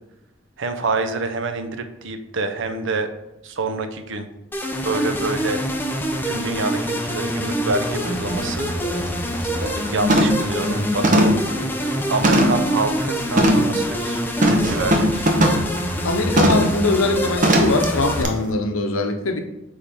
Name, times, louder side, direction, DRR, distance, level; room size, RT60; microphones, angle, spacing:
voice 1, 0.6-3.1 3.4-4.3 4.8-5.6 6.2-8.7 9.9-11.4 12.1-15.3, right 3 dB, 60° right, 0.6 m, -26 dB
sound 1, 4.5-18.2, equal, 10° left, 0.5 m, -25 dB
sound 2, 8.3-8.4 8.8-9.1 9.4-9.8 10.1-10.5 11.0-12.7 13.4-13.7 14.4-15.7 16.4-16.7 17.4-17.8 18.2-18.3, equal, 40° right, 0.8 m, -18 dB
voice 2, 16.0-19.4, left 3 dB, 70° left, 0.8 m, -22 dB
8.4 x 3.8 x 3.5 m
head